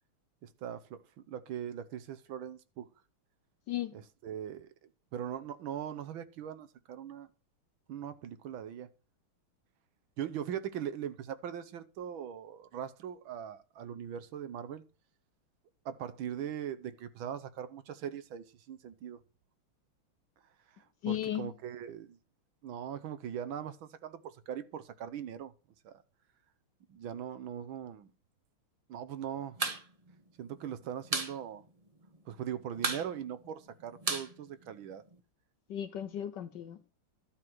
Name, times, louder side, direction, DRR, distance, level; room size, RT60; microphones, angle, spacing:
voice 1, 0.4-1.0 1.3-2.9 3.9-4.7 5.1-7.3 7.9-8.9 10.2-14.8 15.8-19.2 21.1-22.2 22.6-25.5 25.8-25.9 26.9-28.1 28.9-29.6 30.4-31.6 32.3-35.0, right 9 dB, 75° right, 1.6 m, -40 dB
voice 2, 3.7-4.0 21.0-21.5 35.7-36.9, left 11 dB, 70° left, 1.1 m, -35 dB
sound 1, 29.5-29.8 30.1-30.2 30.5-31.3 31.7-31.8 32.0-32.4 32.8-35.1, right 3 dB, 25° right, 0.8 m, -34 dB
12.0 x 4.6 x 7.7 m
omnidirectional pair, 2.4 m